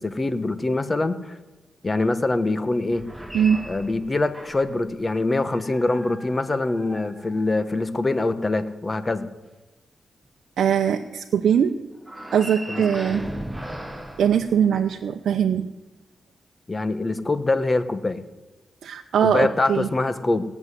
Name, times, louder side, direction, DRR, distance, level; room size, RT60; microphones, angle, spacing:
voice 1, 0.0-1.4 1.8-3.0 3.7-9.3 12.7-12.8 13.1-13.2 16.7-18.2 19.2-20.4, left 2 dB, 25° left, 11 dB, 1.1 m, -24 dB
sound 1, 2.8-4.9 5.5-7.9 12.0-15.2, right 1 dB, 5° right, 1.2 m, -38 dB
voice 2, 10.6-11.7 12.3-13.2 14.2-15.7 18.8-19.9, right 8 dB, 80° right, 4 dB, 0.7 m, -21 dB
17.5 x 7.2 x 9.8 m, 1.1 s
cardioid pair, 85°, 0 cm